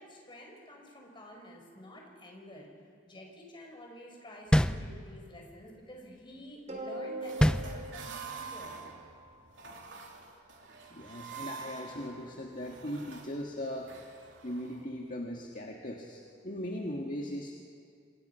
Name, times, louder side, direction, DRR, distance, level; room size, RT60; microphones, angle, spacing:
voice 1, 0.0-2.7 3.1-8.8, equal, 25° left, 0 dB, 5.1 m, -49 dB
sound 1, 4.5-5.4 7.4-8.3, equal, 5° left, 0.5 m, -27 dB
sound 2, 6.7-9.3, right 2 dB, 40° right, 3.6 m, -42 dB
sound 3, 7.2-14.8, right 5 dB, 85° right, 3.1 m, -47 dB
voice 2, 10.9-13.9 14.4-16.2 16.4-17.5, equal, 45° left, 0 dB, 1.9 m, -38 dB
28.0 x 26.5 x 5.8 m, 2.2 s
head